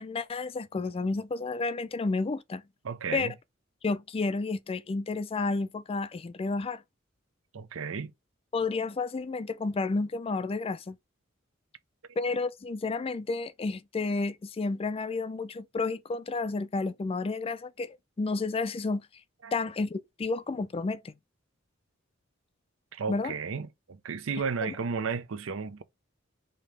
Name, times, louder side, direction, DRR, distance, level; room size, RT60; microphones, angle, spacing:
voice 1, 0.0-2.6 3.1-3.3 3.8-6.8 8.5-11.0 12.2-19.1 19.5-21.1 23.1-23.3 24.6-24.7, left 3 dB, 30° left, 0.4 m, -31 dB
voice 2, 2.8-3.3 7.5-8.1 19.4-19.5 22.9-25.8, right 5 dB, 75° right, 0.6 m, -33 dB
5.2 x 2.8 x 3.3 m
head